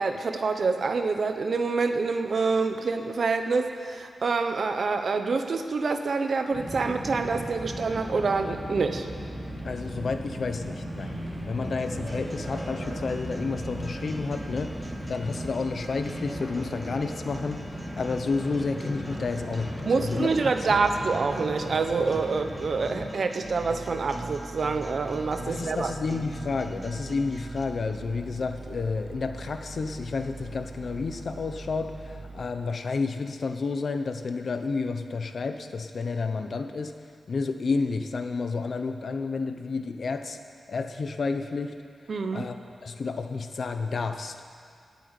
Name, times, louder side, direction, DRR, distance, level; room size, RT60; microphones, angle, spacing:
voice 1, 0.0-9.1 19.9-25.9 42.1-42.5, right 4 dB, 50° right, 7 dB, 1.0 m, -26 dB
sound 1, 6.5-23.1, equal, 5° right, 2.8 m, -36 dB
voice 2, 9.6-11.1 11.4-20.3 20.7-20.8 25.4-36.9 37.3-40.4 40.7-41.7 42.3-42.6 42.8-44.5, left 4 dB, 50° left, 7 dB, 0.9 m, -31 dB
sound 2, 11.6-27.6, right 1 dB, 20° right, 1.3 m, -43 dB
sound 3, 23.4-32.4, right 3 dB, 80° right, 2.7 m, -42 dB
18.0 x 8.3 x 8.4 m, 2.2 s
wide cardioid pair, 175°, 0 cm